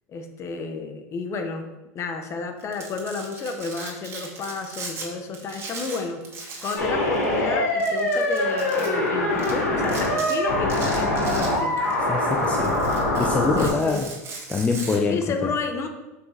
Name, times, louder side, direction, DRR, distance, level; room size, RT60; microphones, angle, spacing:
voice 1, 0.1-1.7 1.9-11.8 13.6-14.1 15.1-15.9, left 4 dB, 35° left, 6 dB, 1.1 m, -31 dB
Domestic sounds home sounds, 2.6-5.1 5.3-6.9 7.1-7.2 7.8-8.9 9.4-9.5 9.8-10.3 10.7-11.9 12.3-15.0, right 4 dB, 30° right, 2.1 m, -38 dB
sound 1, 6.8-13.7, left 1 dB, 85° left, 2.9 m, -23 dB
voice 2, 12.1-12.9 13.2-14.1 14.5-15.5, left 4 dB, 15° left, 3 dB, 0.6 m, -25 dB
7.7 x 5.7 x 4.2 m, 1.1 s
hypercardioid pair, 110°, 8 cm